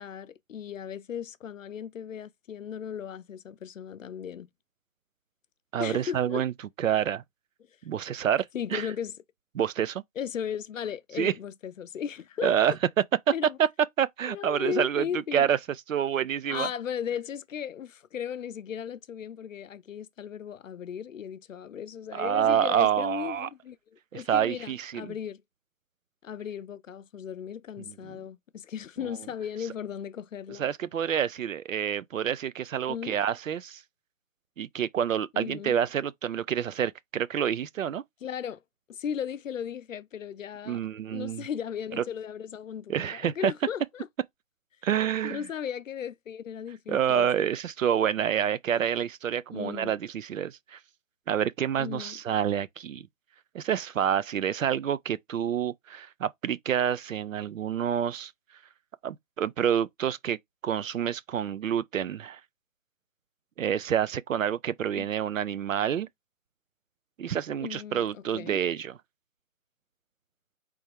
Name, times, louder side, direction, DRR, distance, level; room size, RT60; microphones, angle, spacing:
voice 1, 0.0-4.5 5.8-6.4 8.5-9.1 10.2-12.8 13.3-13.6 14.3-15.5 16.5-25.4 26.2-30.6 32.9-33.2 35.3-35.8 38.2-38.6 38.9-40.8 41.1-44.1 45.2-47.3 49.5-50.0 51.8-52.2 65.0-65.1 67.6-68.6, left 8 dB, 65° left, 0.6 m, -36 dB
voice 2, 5.7-6.5 6.8-7.2 7.8-8.9 9.5-10.0 11.2-11.3 12.4-12.7 13.6-13.7 14.0-15.0 15.3-15.6 15.9-16.7 22.1-23.5 24.1-25.1 27.9-28.0 30.6-33.8 34.6-38.0 40.7-41.4 42.0-42.1 42.9-43.5 44.8-45.4 46.9-50.8 51.3-53.1 53.5-58.3 59.0-60.4 60.6-62.4 63.6-66.1 67.2-68.9, right 9 dB, 65° right, 0.5 m, -28 dB
4.4 x 3.5 x 3.4 m
hypercardioid pair, 170°, 42 cm